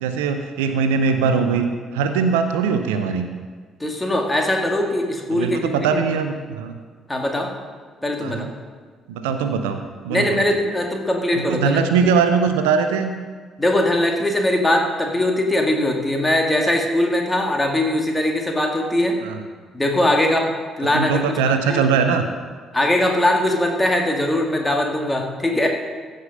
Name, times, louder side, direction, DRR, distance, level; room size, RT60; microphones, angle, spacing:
voice 1, 0.0-1.7 1.9-3.3 5.3-6.8 8.2-8.5 9.1-10.5 11.5-13.1 19.2-19.4 20.9-22.2, right 6 dB, 70° right, 7 dB, 0.6 m, -21 dB
voice 2, 3.8-5.9 7.1-7.5 8.0-8.5 10.1-11.8 13.6-19.2 19.7-20.5 20.8-21.8 22.7-25.7, left 1 dB, 15° left, 2 dB, 2.0 m, -21 dB
15.5 x 5.2 x 5.5 m, 1.5 s
figure-of-eight pair, 45°, 0 cm